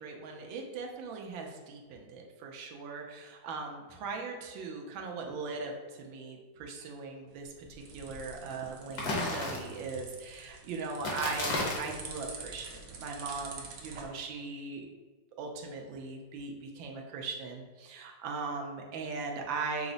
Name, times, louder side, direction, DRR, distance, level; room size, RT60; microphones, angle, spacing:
voice 1, 0.0-14.9 15.4-19.9, right 4 dB, 85° right, 1 dB, 1.4 m, -39 dB
sound 1, 7.3-14.0, right 4 dB, 70° right, 0.9 m, -47 dB
sound 2, 8.9-10.0 11.0-12.0, left 2 dB, 60° left, 1.3 m, -33 dB
5.8 x 2.0 x 3.8 m, 1.3 s
omnidirectional pair, 2.1 m